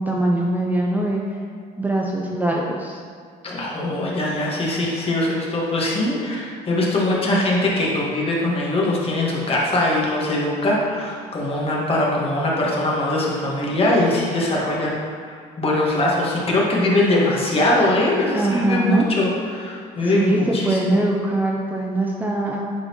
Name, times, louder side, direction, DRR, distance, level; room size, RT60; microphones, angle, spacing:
voice 1, 0.0-1.4 1.8-3.0 18.3-19.1 20.0-22.6, right 1 dB, 10° right, -2 dB, 0.5 m, -22 dB
voice 2, 3.4-15.0 15.3-21.0, left 1 dB, 35° left, -4 dB, 1.6 m, -21 dB
8.8 x 4.1 x 3.1 m, 2.1 s
cardioid pair, 110°, 17 cm